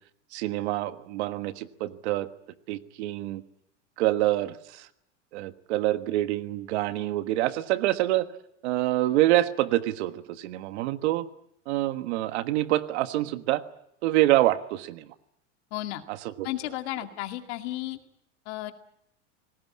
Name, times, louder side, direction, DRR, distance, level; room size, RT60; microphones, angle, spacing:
voice 1, 0.3-2.3 2.7-3.4 4.0-4.9 5.3-8.3 8.6-11.3 11.7-13.6 14.0-15.0 16.1-16.5, right 15 dB, 60° right, 11 dB, 1.5 m, -26 dB
voice 2, 15.7-16.0 16.4-18.0 18.5-18.7, left 15 dB, 60° left, 6 dB, 2.3 m, -33 dB
27.5 x 19.0 x 8.6 m, 0.76 s
supercardioid pair, 155°, 37 cm